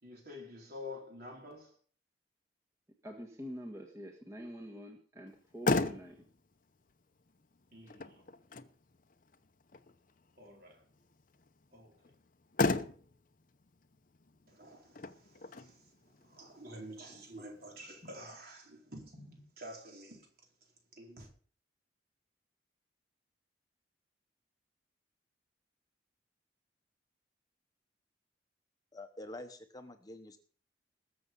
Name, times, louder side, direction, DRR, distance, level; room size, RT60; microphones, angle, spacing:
voice 1, 0.0-1.8 7.7-8.2 10.4-10.8 11.7-12.1 14.5-20.3 20.9-21.3, left 1 dB, 55° right, 4.4 m, -49 dB
voice 2, 3.0-6.3, equal, 15° right, 1.6 m, -46 dB
Motor vehicle (road), 5.3-18.2, left 3 dB, 45° left, 0.8 m, -39 dB
voice 3, 28.9-30.4, left 1 dB, 20° left, 1.1 m, -47 dB
20.5 x 7.1 x 5.4 m
head